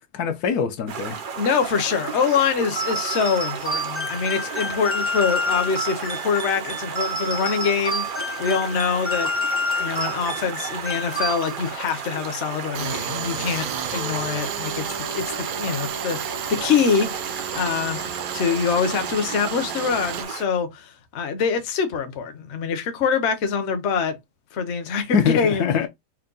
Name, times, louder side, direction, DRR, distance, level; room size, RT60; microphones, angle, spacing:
voice 1, 0.1-1.2 25.1-25.9, left 8 dB, 75° left, 1.2 m, -23 dB
Stream, 0.9-20.4, right 6 dB, 65° right, 0.5 m, -34 dB
voice 2, 1.4-9.3 9.8-24.2 24.5-25.7, left 6 dB, 55° left, 0.9 m, -25 dB
sound 1, 2.7-11.8, left 1 dB, 15° left, 0.4 m, -28 dB
Tools, 12.7-20.2, right 8 dB, 90° right, 1.3 m, -32 dB
4.5 x 2.2 x 3.8 m
omnidirectional pair, 1.7 m